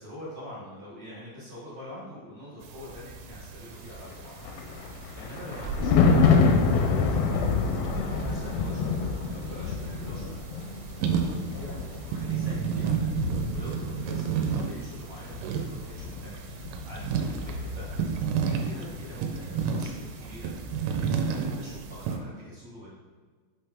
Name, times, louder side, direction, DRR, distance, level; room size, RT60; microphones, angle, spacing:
voice 1, 0.0-4.4 5.1-10.4 11.3-13.2 13.5-16.4 16.9-22.9, left 1 dB, 65° right, -9 dB, 1.8 m, -45 dB
sound 1, 2.6-22.2, right 6 dB, 85° right, 3.2 m, -33 dB
Thunder, 4.0-18.6 18.9-19.2, left 4 dB, 85° left, 2.6 m, -28 dB
7.9 x 4.3 x 3.6 m, 1.5 s
omnidirectional pair, 5.6 m